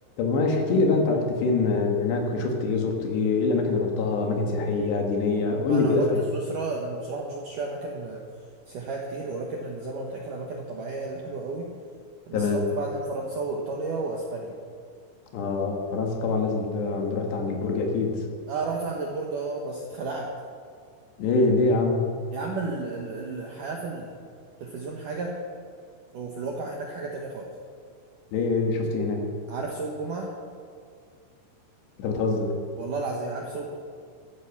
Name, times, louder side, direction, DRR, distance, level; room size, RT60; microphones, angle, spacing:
voice 1, 0.2-6.2 12.3-12.6 15.3-18.2 21.2-22.1 28.3-29.3 32.0-32.6, left 3 dB, 70° left, 2 dB, 3.6 m, -24 dB
voice 2, 5.4-8.2 8.7-11.7 12.3-14.5 18.5-20.3 22.3-24.1 24.6-25.4 26.1-27.5 29.5-30.3 32.8-33.7, right 3 dB, 70° right, 0 dB, 2.0 m, -33 dB
15.0 x 12.5 x 6.0 m, 2.2 s
omnidirectional pair, 5.5 m